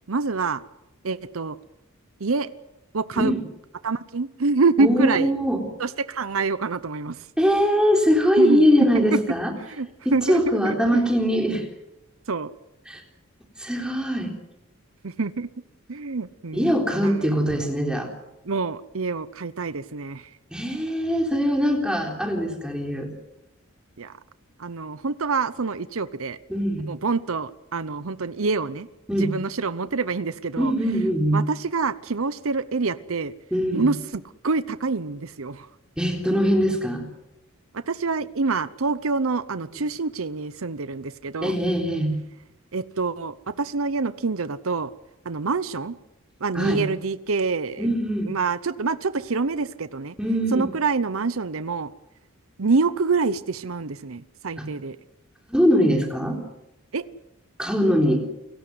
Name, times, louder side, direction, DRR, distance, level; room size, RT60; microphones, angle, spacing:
voice 1, 0.1-0.6 1.0-1.6 2.2-2.5 2.9-3.3 3.8-5.3 5.8-7.3 8.4-8.6 8.9-9.2 9.7-11.0 12.3-12.5 15.0-15.5 15.9-17.3 18.4-20.3 24.0-24.1 24.6-26.4 26.9-28.9 29.2-30.7 31.3-33.3 33.7-35.7 37.7-41.6 42.7-44.9 45.2-46.0 46.4-47.9 48.3-50.1 50.5-51.9 52.6-55.0 56.9-57.0, right 4 dB, 70° right, 15 dB, 0.8 m, -26 dB
voice 2, 4.8-5.6 7.4-9.5 10.1-11.6 12.9-13.0 13.6-14.3 16.5-18.1 20.5-23.1 26.5-26.9 29.1-29.3 30.6-31.4 33.5-33.9 36.0-37.0 41.4-42.1 46.6-46.8 47.8-48.3 50.2-50.7 54.6-54.7 55.5-56.4 57.6-58.2, equal, 5° right, 2 dB, 3.8 m, -22 dB
29.5 x 17.0 x 7.9 m, 0.92 s
head